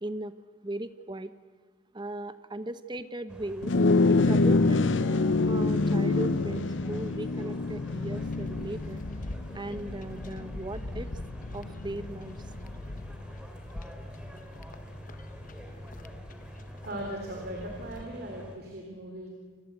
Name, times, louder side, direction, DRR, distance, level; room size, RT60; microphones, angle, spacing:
voice 1, 0.0-0.3 0.6-1.3 1.9-3.7 4.1-9.0 9.5-11.1 11.5-12.5, right 1 dB, 25° right, 12 dB, 1.0 m, -38 dB
sound 1, 3.3-18.6, equal, 5° right, 3.1 m, -46 dB
sound 2, 3.6-13.2, left 3 dB, 65° left, 0.7 m, -27 dB
sound 3, 8.2-18.0, left 1 dB, 45° left, 1.0 m, -44 dB
voice 2, 16.8-19.3, right 1 dB, 50° right, 1 dB, 3.6 m, -38 dB
28.0 x 19.5 x 8.1 m, 1.5 s
head